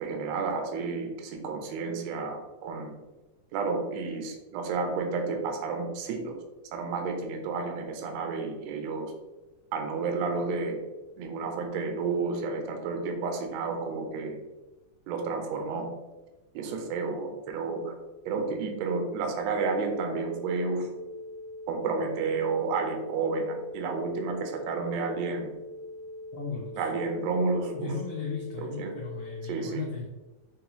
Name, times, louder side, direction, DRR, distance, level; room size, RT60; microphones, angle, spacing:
voice 1, 0.0-2.9 3.5-6.3 6.7-9.1 9.7-10.8 11.2-14.4 15.1-15.9 16.5-17.9 18.2-20.9 21.7-25.5 26.8-27.9 28.6-28.9 29.5-29.8, right 4 dB, 75° right, 3 dB, 1.6 m, -31 dB
sound 1, 19.4-29.4, left 1 dB, 45° left, 0.9 m, -42 dB
voice 2, 26.3-26.8 27.7-30.1, left 5 dB, 85° left, -2 dB, 1.3 m, -36 dB
5.4 x 3.2 x 2.9 m, 1.1 s
omnidirectional pair, 3.6 m